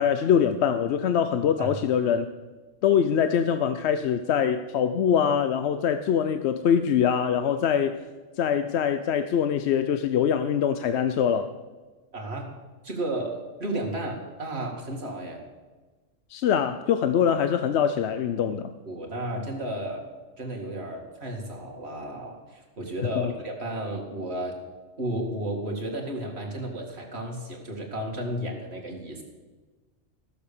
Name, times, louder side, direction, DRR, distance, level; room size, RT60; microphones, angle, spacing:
voice 1, 0.0-2.3 2.8-8.0 8.4-11.5 16.3-18.7 23.2-23.3, left 8 dB, 65° left, 9 dB, 0.8 m, -23 dB
voice 2, 12.1-12.6 12.8-15.4 18.9-20.1 20.4-24.6 25.0-29.2, right 1 dB, 55° right, 0 dB, 2.4 m, -33 dB
14.5 x 7.1 x 6.9 m, 1.3 s
omnidirectional pair, 1.3 m